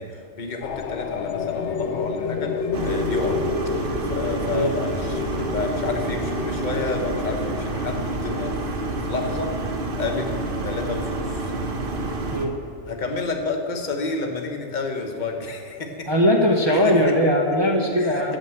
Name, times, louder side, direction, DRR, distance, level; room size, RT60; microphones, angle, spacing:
voice 1, 0.0-3.4 4.0-9.5 10.0-11.5 12.9-16.1 16.7-17.1 18.0-18.4, left 3 dB, 40° left, 3 dB, 1.2 m, -30 dB
sound 1, 0.6-12.2, left 5 dB, 75° left, 0.9 m, -31 dB
sound 2, 2.7-12.5, right 2 dB, 50° right, 1.1 m, -28 dB
voice 2, 16.1-18.4, equal, 25° right, -1 dB, 0.9 m, -20 dB
9.1 x 7.5 x 7.8 m, 2.3 s
omnidirectional pair, 1.2 m